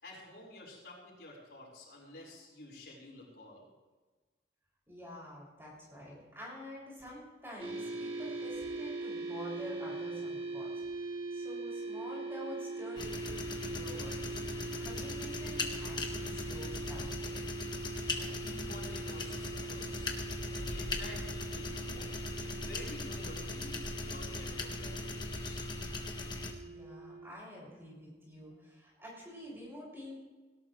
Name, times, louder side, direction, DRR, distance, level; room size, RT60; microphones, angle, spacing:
voice 1, 0.0-3.6 18.0-20.1 20.5-25.7, left 1 dB, 70° left, -3 dB, 4.7 m, -50 dB
voice 2, 4.9-14.5 14.8-17.4 26.6-30.2, equal, 15° right, -5 dB, 6.3 m, -48 dB
sound 1, 7.6-27.3, right 3 dB, 30° right, 2.0 m, -42 dB
sound 2, 13.0-26.5, left 2 dB, 25° left, 1.5 m, -39 dB
18.0 x 18.0 x 3.2 m, 1.3 s
head